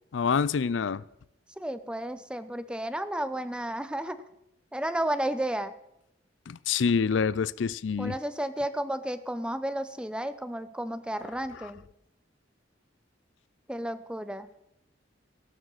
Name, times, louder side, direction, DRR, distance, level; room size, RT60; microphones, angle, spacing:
voice 1, 0.1-1.0 6.5-8.1, left 6 dB, 85° left, 0.5 m, -26 dB
voice 2, 1.6-4.2 4.7-5.7 8.0-11.8 13.7-14.5, right 1 dB, 5° right, 0.8 m, -32 dB
17.5 x 12.5 x 4.1 m
head